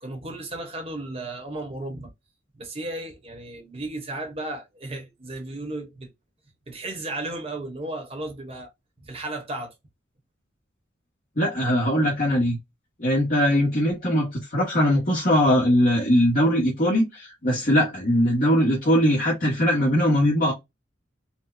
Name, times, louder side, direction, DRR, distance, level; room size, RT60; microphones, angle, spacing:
voice 1, 0.0-2.1 2.5-6.1 6.7-8.7 9.0-9.7, right 2 dB, 35° right, 1.1 m, -34 dB
voice 2, 11.4-12.6 13.0-20.5, equal, 50° left, 1.3 m, -21 dB
4.3 x 2.2 x 2.5 m
head